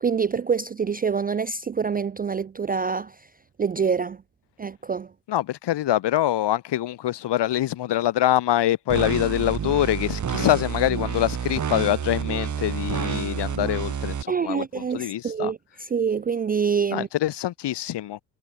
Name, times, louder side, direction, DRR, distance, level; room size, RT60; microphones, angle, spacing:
voice 1, 0.0-3.2 3.6-4.2 4.6-5.1 14.3-17.1, right 6 dB, 20° right, 0.4 m, -26 dB
voice 2, 5.3-15.5 16.9-18.2, left 13 dB, 55° left, 1.7 m, -24 dB
sound 1, 8.9-14.2, right 7 dB, 35° right, 2.6 m, -29 dB
cardioid pair, 100°, 48 cm